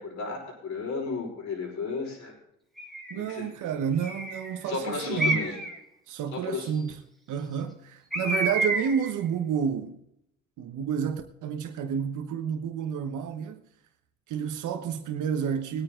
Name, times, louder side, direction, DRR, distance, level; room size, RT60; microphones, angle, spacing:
voice 1, 0.0-2.4 3.1-3.5 4.6-5.6 6.3-6.7, left 4 dB, 65° left, 5.2 m, -33 dB
Bird, 2.8-3.2 4.0-4.5 5.2-5.8 8.1-9.1, right 1 dB, ahead, 2.4 m, -29 dB
voice 2, 3.1-5.4 6.1-7.0 7.3-10.0 10.6-13.6 14.3-15.8, right 7 dB, 80° right, 1.2 m, -30 dB
20.0 x 9.2 x 3.8 m
cardioid pair, 90°, 30 cm